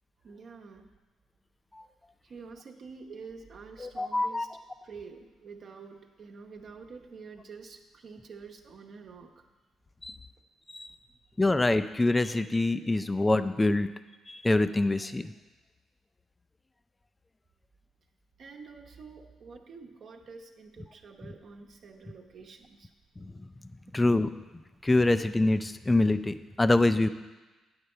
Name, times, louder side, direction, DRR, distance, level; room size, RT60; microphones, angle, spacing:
voice 1, 0.2-0.9 2.2-4.5 4.8-9.5 18.4-22.9, right 5 dB, 55° right, 2 dB, 0.9 m, -47 dB
voice 2, 3.8-4.5 10.0-10.1 10.7-10.9 11.4-13.9 14.3-15.3 23.2-23.3 23.9-24.3 24.8-27.1, left 2 dB, 15° left, 12 dB, 0.4 m, -25 dB
9.6 x 4.4 x 6.6 m, 1.2 s
cardioid pair, 90°, 0 cm